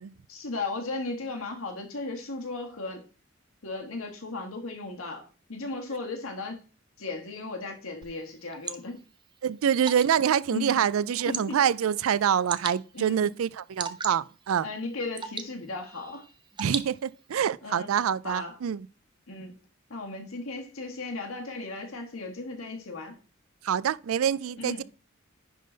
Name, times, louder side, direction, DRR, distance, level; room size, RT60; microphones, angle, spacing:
voice 1, 0.3-3.1 3.6-6.6 7.0-9.0 10.5-10.8 11.2-11.6 12.9-13.3 14.6-16.2 17.6-17.9 18.2-18.6 19.3-19.6 19.9-23.2 24.6-24.8, left 3 dB, 90° left, 1.6 m, -36 dB
Water / Drip, 8.0-17.4, right 6 dB, 20° right, 0.5 m, -41 dB
voice 2, 9.4-14.7 16.6-18.9 23.6-24.8, right 8 dB, 85° right, 0.4 m, -26 dB
10.5 x 3.8 x 3.9 m
head